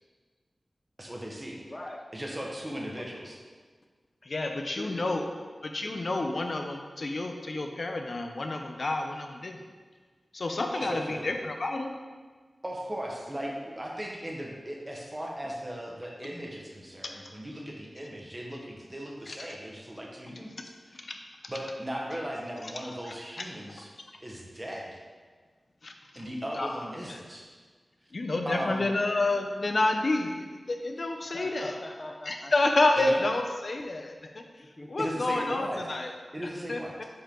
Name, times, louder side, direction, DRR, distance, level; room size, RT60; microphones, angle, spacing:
voice 1, 1.0-1.6 2.1-3.4 10.7-11.3 12.6-21.0 21.5-23.9 24.2-24.9 26.1-27.5 28.4-28.9 33.0-33.3 35.0-35.8 36.3-36.9, equal, 20° right, -2 dB, 1.3 m, -37 dB
voice 2, 1.7-2.2 2.7-3.1 4.7-5.5 31.2-32.5 34.2-35.1, left 1 dB, 25° left, 3 dB, 0.7 m, -43 dB
voice 3, 4.2-5.2 5.6-9.6 10.3-11.9 19.3-19.5 21.0-21.2 25.8-25.9 26.6-27.2 28.1-31.7 32.3-34.4 34.9-36.1 36.7-37.0, left 2 dB, 60° left, 4 dB, 0.7 m, -29 dB
7.3 x 4.8 x 3.9 m, 1.5 s
wide cardioid pair, 75°, 0 cm